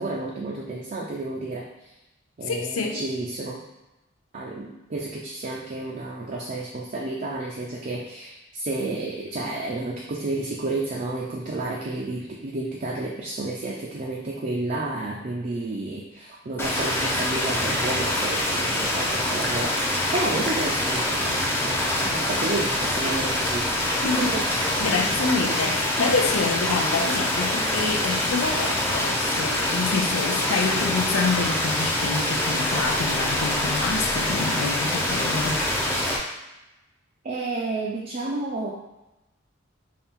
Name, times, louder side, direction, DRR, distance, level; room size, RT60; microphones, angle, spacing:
voice 1, 0.0-1.9 2.4-3.6 4.3-23.7 24.0-24.5 37.2-38.7, right 2 dB, 40° right, -4 dB, 0.5 m, -31 dB
voice 2, 2.5-3.0 24.0-35.6, left 4 dB, 80° left, 2 dB, 0.5 m, -27 dB
sound 1, 16.6-36.2, left 1 dB, 10° left, 0.5 m, -25 dB
4.2 x 2.3 x 3.6 m, 0.97 s
head